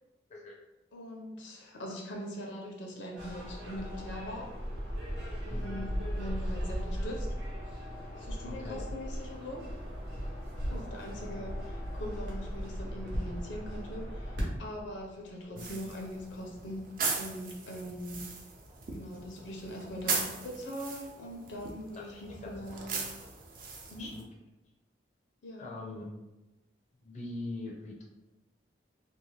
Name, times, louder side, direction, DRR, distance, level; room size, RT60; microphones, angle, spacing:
voice 1, 0.9-4.5 5.4-5.9 6.2-7.3 8.2-9.7 10.7-18.2 18.9-22.9 23.9-24.1 25.4-25.7, equal, 90° left, 0 dB, 0.6 m, -42 dB
sound 1, 3.2-16.7, equal, 85° right, 0.9 m, -38 dB
voice 2, 5.5-5.8 8.4-8.8 10.7-10.8 15.5-15.6 21.9-22.5 24.0-24.2 25.6-26.1 27.0-28.0, left 2 dB, 40° left, -2 dB, 0.4 m, -42 dB
sound 2, 15.6-24.2, right 4 dB, 50° right, 0.4 m, -39 dB
2.6 x 2.1 x 3.1 m, 1.0 s
head